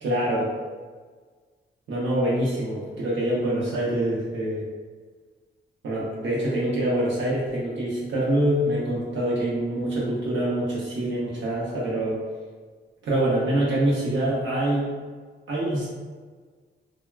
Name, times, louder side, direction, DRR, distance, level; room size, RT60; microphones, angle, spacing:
voice 1, 0.0-0.5 1.9-4.6 5.8-12.2 13.0-14.8 15.5-15.9, right 1 dB, 85° right, -6 dB, 0.7 m, -25 dB
3.3 x 2.1 x 2.3 m, 1.5 s
wide cardioid pair, 180°, 19 cm